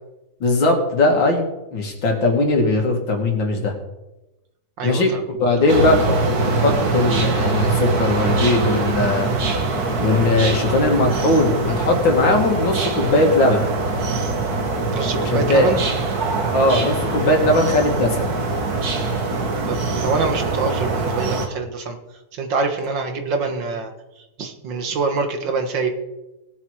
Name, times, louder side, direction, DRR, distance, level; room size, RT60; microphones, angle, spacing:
voice 1, 0.4-3.7 4.8-5.1 5.4-6.1 6.4-9.3 10.0-13.6 15.2-15.7 16.5-18.3, left 2 dB, 90° left, 2 dB, 2.8 m, -19 dB
voice 2, 4.8-5.2 5.6-5.7 14.9-15.8 19.7-22.0 22.3-23.9 24.2-25.9, right 4 dB, 75° right, 5 dB, 2.2 m, -25 dB
sound 1, 5.7-21.5, right 3 dB, 55° right, 1.9 m, -23 dB
19.0 x 6.9 x 4.8 m, 1.0 s
omnidirectional pair, 2.0 m